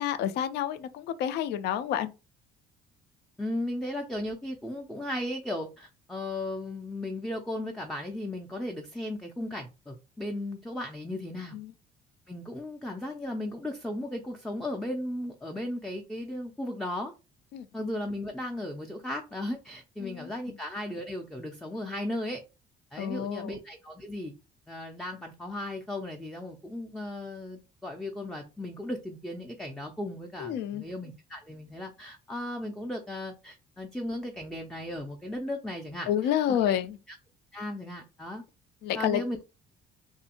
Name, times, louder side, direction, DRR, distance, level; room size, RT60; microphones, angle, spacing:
voice 1, 0.0-2.1 11.5-11.7 17.5-17.7 20.0-20.3 23.0-23.6 30.4-30.8 36.1-37.0 38.8-39.2, left 10 dB, 75° left, 0.4 m, -29 dB
voice 2, 3.4-11.6 12.3-17.1 17.7-22.4 22.9-24.3 24.7-36.1 36.5-36.8 37.1-37.2 37.5-38.4 38.9-39.4, left 1 dB, 5° left, 0.4 m, -36 dB
2.6 x 2.4 x 2.8 m
cardioid pair, 110°, 17 cm